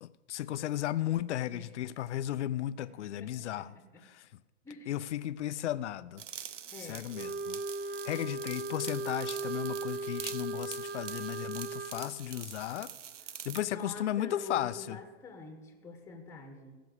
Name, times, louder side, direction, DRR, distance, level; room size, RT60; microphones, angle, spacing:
voice 1, 0.0-3.7 4.0-4.3 4.9-6.2 6.8-7.6 7.9-12.9 13.4-15.0, left 12 dB, 70° left, 0.6 m, -35 dB
voice 2, 3.2-4.0 4.6-4.9 6.7-7.1 13.6-16.7, left 3 dB, 5° left, 1.2 m, -46 dB
sound 1, 6.2-13.7, right 9 dB, 85° right, 1.0 m, -45 dB
Wind instrument woodwind instrument, 7.1-12.0, right 3 dB, 20° right, 0.7 m, -37 dB
15.5 x 6.1 x 7.9 m
hypercardioid pair, 150°, 36 cm